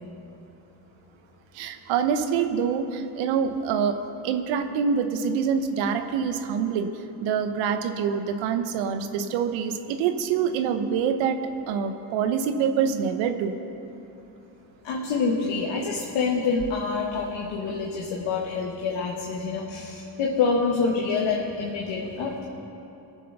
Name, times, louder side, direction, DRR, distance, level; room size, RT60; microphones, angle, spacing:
voice 1, 1.5-6.9 7.2-11.4 11.7-13.5, right 7 dB, 75° right, 8 dB, 1.1 m, -25 dB
voice 2, 14.8-22.4, left 4 dB, 70° left, -1 dB, 1.5 m, -26 dB
20.5 x 7.2 x 6.0 m, 2.9 s
supercardioid pair, 70°, 45 cm